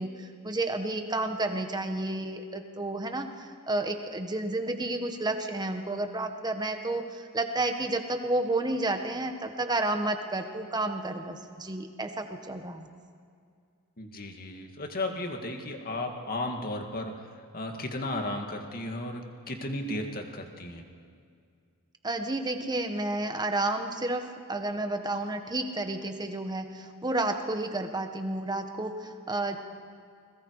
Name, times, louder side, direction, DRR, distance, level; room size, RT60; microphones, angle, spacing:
voice 1, 0.0-12.9 22.0-29.6, right 2 dB, 20° right, 5 dB, 1.6 m, -31 dB
voice 2, 14.0-17.1 17.5-20.8, left 1 dB, 40° left, 3 dB, 2.3 m, -34 dB
29.5 x 21.5 x 4.9 m, 2.3 s
head